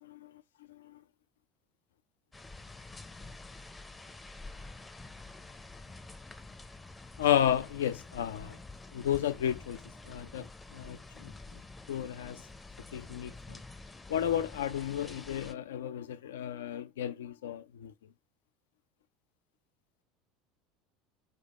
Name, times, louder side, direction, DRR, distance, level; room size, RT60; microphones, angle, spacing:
sound 1, 2.3-15.5, left 2 dB, 15° left, 0.5 m, -48 dB
voice 1, 7.2-8.6 8.9-11.6 11.9-12.5 12.9-13.6 14.1-17.9, left 10 dB, 90° left, 0.3 m, -33 dB
3.8 x 3.4 x 2.4 m
hypercardioid pair, 90°, 0 cm